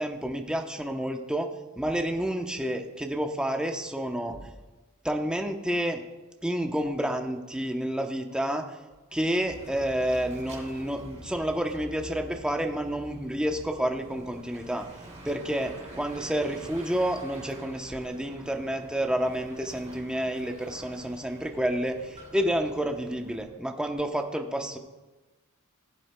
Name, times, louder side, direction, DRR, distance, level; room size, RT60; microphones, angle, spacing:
voice 1, 0.0-1.5 1.8-4.5 5.0-6.0 6.4-8.7 9.1-14.8 15.2-24.8, right 1 dB, 5° right, 3 dB, 0.8 m, -29 dB
Bicycle / Mechanisms, 9.5-23.5, right 1 dB, 30° right, 3.8 m, -47 dB
19.0 x 7.9 x 2.2 m, 1.2 s
head